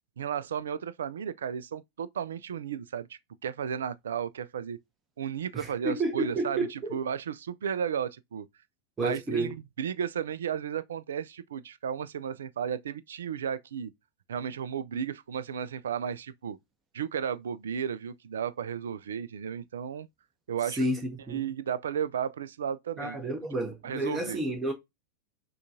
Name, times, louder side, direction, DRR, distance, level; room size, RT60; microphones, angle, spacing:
voice 1, 0.2-4.8 5.2-6.7 6.9-8.5 9.0-13.9 14.3-16.6 16.9-20.1 20.5-20.8 21.3-23.2 23.8-24.4, right 8 dB, 65° right, 0.3 m, -34 dB
voice 2, 5.5-7.0 9.0-9.5 20.6-21.4 23.0-24.7, right 1 dB, 15° right, 0.9 m, -31 dB
6.3 x 2.3 x 2.7 m
figure-of-eight pair, 90°, 0 cm